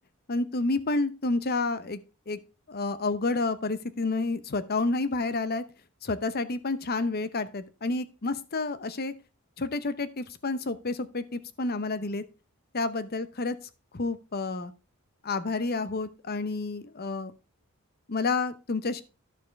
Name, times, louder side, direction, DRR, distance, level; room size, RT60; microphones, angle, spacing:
voice 1, 0.3-2.0 2.3-2.4 2.7-5.6 6.0-9.1 9.6-12.2 12.7-13.6 13.9-14.7 15.2-17.3 18.1-19.0, left 3 dB, 45° left, 14 dB, 0.8 m, -29 dB
11.0 x 6.8 x 3.4 m, 0.32 s
head